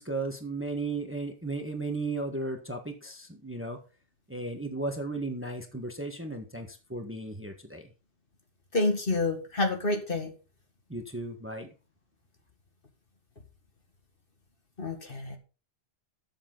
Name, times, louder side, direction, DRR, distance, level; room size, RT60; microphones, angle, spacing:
voice 1, 0.0-3.8 4.3-7.9 10.9-11.7, right 2 dB, 10° right, 5 dB, 1.3 m, -35 dB
voice 2, 8.7-10.3 14.8-15.4, left 2 dB, 50° left, 4 dB, 2.1 m, -28 dB
12.5 x 7.3 x 3.9 m, 0.34 s
omnidirectional pair, 1.2 m